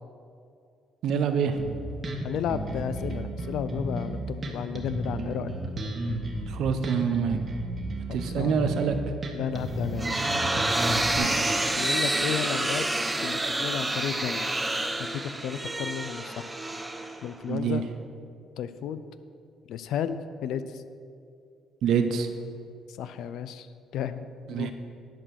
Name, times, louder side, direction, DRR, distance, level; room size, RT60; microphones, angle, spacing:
voice 1, 1.0-1.6 6.5-7.4 8.1-9.0 11.2-11.4 17.5-17.8 21.8-22.3 24.5-24.7, right 7 dB, 70° right, 7 dB, 0.8 m, -26 dB
Bass guitar, 1.6-11.2, right 1 dB, 40° right, 1.5 m, -33 dB
voice 2, 2.2-5.5 8.1-8.7 9.3-10.3 11.7-12.9 13.2-14.5 15.0-16.5 17.2-17.9 18.6-19.0 19.7-20.8 22.9-23.7 23.9-24.7, left 8 dB, 75° left, 12 dB, 0.5 m, -33 dB
sound 1, 9.6-17.5, right 2 dB, 15° right, 0.7 m, -28 dB
10.5 x 5.1 x 6.4 m, 2.4 s
cardioid pair, 80°, 0 cm